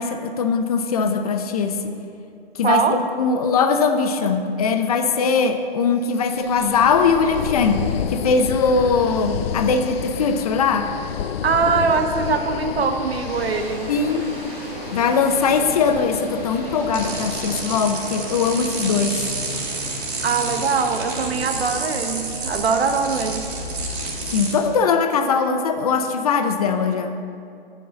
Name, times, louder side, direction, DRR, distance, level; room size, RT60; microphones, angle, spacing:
voice 1, 0.0-1.9 2.6-7.8 8.1-10.9 13.9-14.3 14.9-19.3 24.3-27.1, left 5 dB, 40° left, 7 dB, 0.6 m, -20 dB
voice 2, 2.6-3.0 11.4-13.9 20.2-23.5, right 5 dB, 85° right, 7 dB, 1.0 m, -22 dB
sound 1, 6.2-18.0, left 9 dB, 80° left, 0.5 m, -31 dB
sound 2, 12.6-23.6, right 1 dB, 15° right, 1.4 m, -39 dB
sound 3, 16.9-24.5, right 2 dB, 60° right, 2.3 m, -29 dB
6.9 x 6.1 x 7.5 m, 2.4 s
hypercardioid pair, 155°, 30 cm